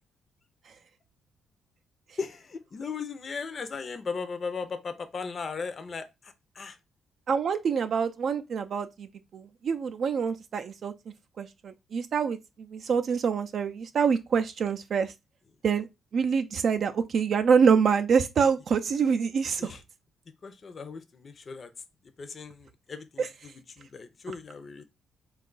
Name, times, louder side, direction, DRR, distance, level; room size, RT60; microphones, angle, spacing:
voice 1, 2.2-6.8 19.6-19.8 20.4-21.7 22.2-24.8, left 5 dB, 40° left, 0.5 m, -37 dB
voice 2, 7.3-9.1 9.3-10.9 11.4-12.4 12.7-15.1 15.6-15.9 16.1-19.7 23.2-23.3, right 6 dB, 55° right, 0.3 m, -25 dB
3.6 x 2.3 x 3.8 m
cardioid pair, 90°, 0 cm